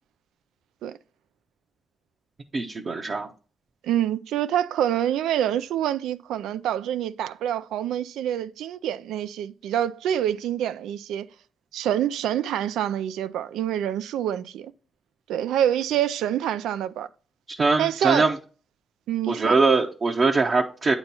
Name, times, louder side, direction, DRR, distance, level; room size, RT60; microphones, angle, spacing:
voice 1, 2.5-3.3 17.5-18.3 19.3-20.9, right 3 dB, 50° right, 0.8 m, -22 dB
voice 2, 3.8-11.3 11.7-14.7 15.3-17.1 17.8-18.3 19.1-19.5, right 11 dB, 90° right, 0.3 m, -26 dB
8.7 x 2.9 x 5.4 m
supercardioid pair, 60°, 0 cm